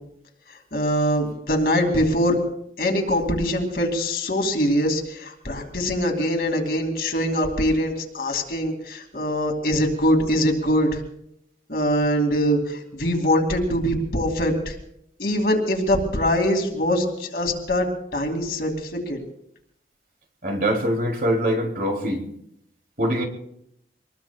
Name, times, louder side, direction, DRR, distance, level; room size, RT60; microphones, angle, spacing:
voice 1, 0.7-2.4 2.8-11.0 11.7-14.7 15.2-19.2, equal, 55° left, 2.6 m, -23 dB
voice 2, 20.4-22.2 23.0-23.3, equal, 50° right, 3.0 m, -23 dB
25.5 x 20.5 x 2.4 m
head